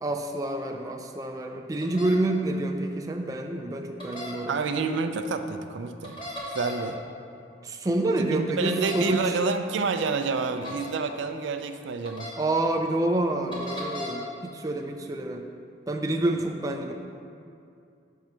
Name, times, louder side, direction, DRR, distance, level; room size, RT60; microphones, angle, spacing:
voice 1, 0.0-4.6 7.6-9.4 12.4-15.4 15.9-16.9, right 2 dB, 20° right, 3 dB, 0.3 m, -28 dB
sound 1, 1.8-2.1 4.0-4.3 6.0-6.8 8.7-9.1 10.6-10.9 12.0-12.3 13.5-14.1, left 1 dB, 25° left, 1.2 m, -36 dB
voice 2, 4.5-6.2 6.5-7.0 8.3-12.3, right 4 dB, 85° right, 8 dB, 0.4 m, -28 dB
5.4 x 4.6 x 6.1 m, 2.5 s
head